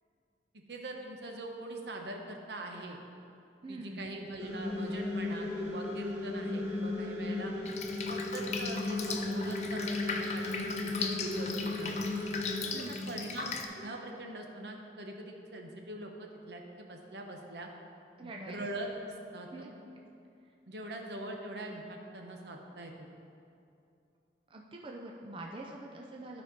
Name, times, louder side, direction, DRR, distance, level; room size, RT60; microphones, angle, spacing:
voice 1, 0.7-3.0 3.7-7.5 8.1-12.0 12.6-17.7 18.2-19.5 20.7-23.1, right 1 dB, 80° right, 2 dB, 1.0 m, -42 dB
voice 2, 3.6-4.1 12.7-13.3 18.2-18.7 19.5-19.8 24.5-26.4, right 1 dB, 30° right, 0 dB, 0.5 m, -44 dB
sound 1, 4.4-12.6, left 2 dB, 15° right, 1.2 m, -35 dB
Drip, 7.7-13.7, left 5 dB, 40° left, 0.5 m, -38 dB
12.0 x 4.3 x 5.1 m, 2.6 s
head